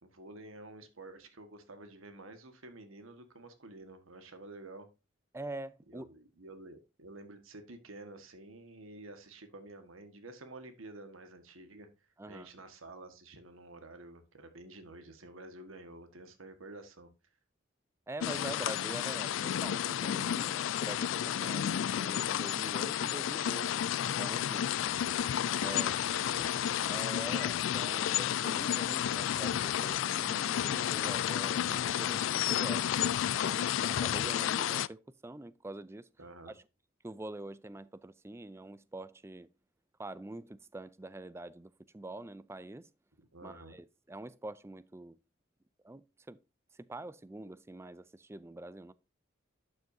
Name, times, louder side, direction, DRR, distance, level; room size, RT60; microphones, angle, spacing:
voice 1, 0.0-4.9 5.9-11.9 12.3-17.1 24.6-27.0 36.2-36.5 43.3-43.8, right 2 dB, 90° right, 1.6 m, -50 dB
voice 2, 5.3-6.1 12.2-12.5 18.1-24.7 25.6-26.0 26.9-36.1 37.0-39.5 40.0-42.9 43.4-45.2 45.8-46.4 46.7-48.9, right 2 dB, 15° right, 0.4 m, -45 dB
sound 1, 18.2-34.9, left 10 dB, 70° left, 0.3 m, -31 dB
11.5 x 6.3 x 2.7 m
head